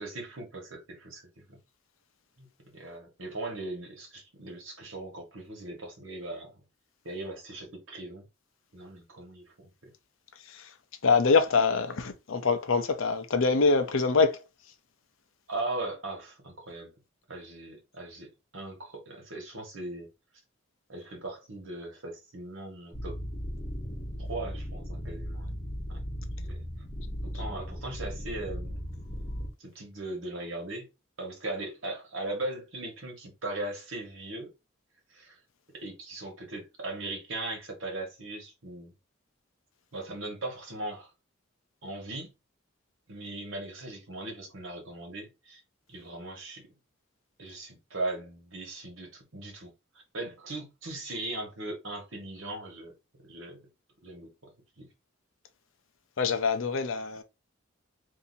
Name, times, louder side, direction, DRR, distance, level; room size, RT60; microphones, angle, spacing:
voice 1, 0.0-1.6 2.4-2.5 2.7-6.6 7.0-8.3 8.7-9.9 15.5-16.9 17.3-20.1 20.9-23.2 24.2-25.5 25.9-26.0 26.4-26.6 27.2-28.8 29.6-30.9 31.2-34.5 35.1-35.4 35.7-38.9 39.9-41.1 41.8-42.3 43.1-45.6 45.9-46.7 47.4-49.7 50.1-52.9 53.2-53.7 54.0-54.9, right 2 dB, 75° right, 1.4 m, -39 dB
voice 2, 10.4-10.7 11.0-14.4 27.3-27.4 56.2-57.2, left 4 dB, 80° left, 0.6 m, -25 dB
sound 1, 22.9-29.5, equal, 20° left, 1.0 m, -37 dB
2.7 x 2.7 x 4.0 m
head